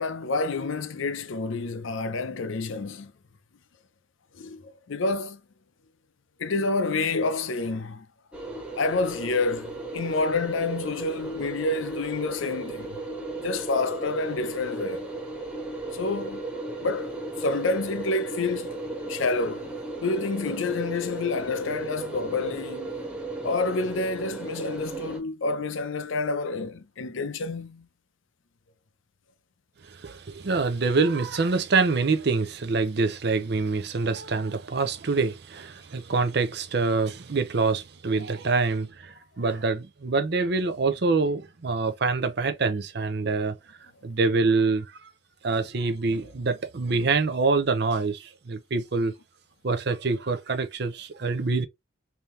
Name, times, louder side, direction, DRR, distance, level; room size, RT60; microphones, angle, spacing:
voice 1, 0.0-3.1 4.3-5.4 6.4-8.1 8.8-13.0 13.4-15.1 15.9-16.4 16.8-18.7 19.1-19.7 20.0-22.9 23.4-27.9, left 3 dB, 70° left, 0.5 m, -28 dB
sound 1, 8.3-25.2, right 2 dB, 5° right, 0.7 m, -35 dB
voice 2, 29.9-43.8 44.0-45.1 45.4-49.1 49.6-51.7, right 4 dB, 55° right, 0.6 m, -25 dB
3.5 x 2.8 x 3.1 m
head